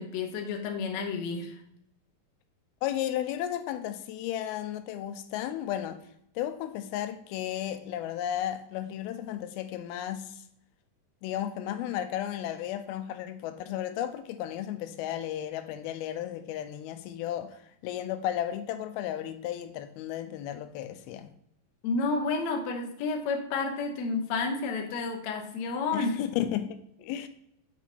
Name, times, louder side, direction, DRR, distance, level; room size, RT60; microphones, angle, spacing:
voice 1, 0.0-1.6 21.8-26.2, left 4 dB, 70° left, 1.8 m, -30 dB
voice 2, 2.8-6.0 6.4-10.4 11.2-21.3 25.9-26.7 27.0-27.3, left 11 dB, 85° left, 2.4 m, -34 dB
8.0 x 4.5 x 4.2 m
omnidirectional pair, 4.3 m